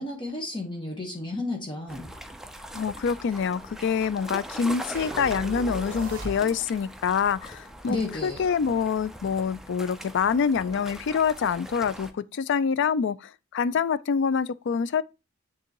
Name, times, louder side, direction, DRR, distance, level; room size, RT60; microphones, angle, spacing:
voice 1, 0.0-2.1 7.9-8.5, left 2 dB, 25° left, 1.1 m, -32 dB
sound 1, 1.9-12.1, right 1 dB, ahead, 0.5 m, -41 dB
voice 2, 2.7-15.0, left 6 dB, 60° left, 0.4 m, -26 dB
sound 2, 5.0-6.8, right 2 dB, 45° right, 1.2 m, -37 dB
9.2 x 3.6 x 2.9 m
head